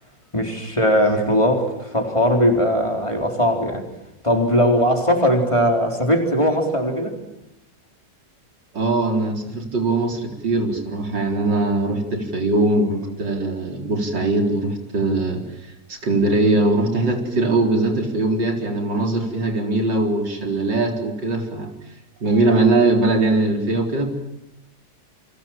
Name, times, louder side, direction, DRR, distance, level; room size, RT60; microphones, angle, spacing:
voice 1, 0.3-3.9 4.2-7.2, equal, 15° left, 3 dB, 4.2 m, -19 dB
voice 2, 8.7-21.7 22.2-24.1, right 2 dB, 90° right, 3 dB, 4.8 m, -21 dB
29.5 x 26.0 x 7.5 m, 0.86 s
omnidirectional pair, 1.9 m